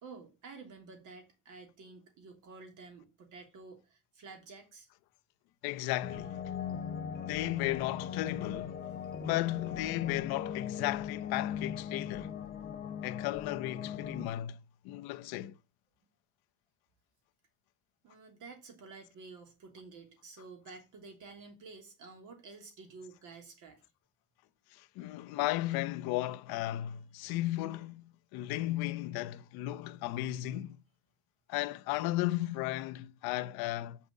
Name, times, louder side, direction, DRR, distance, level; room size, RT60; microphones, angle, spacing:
voice 1, 0.0-4.9 18.0-23.8, right 4 dB, 55° right, 3.1 m, -51 dB
voice 2, 5.6-6.4 7.2-8.8 9.2-12.3 13.0-15.6 24.7-28.0 28.3-30.8 31.5-34.0, left 16 dB, 90° left, 0.8 m, -35 dB
sound 1, 6.0-14.3, left 8 dB, 25° left, 0.9 m, -39 dB
6.7 x 5.7 x 7.2 m
cardioid pair, 155°, 36 cm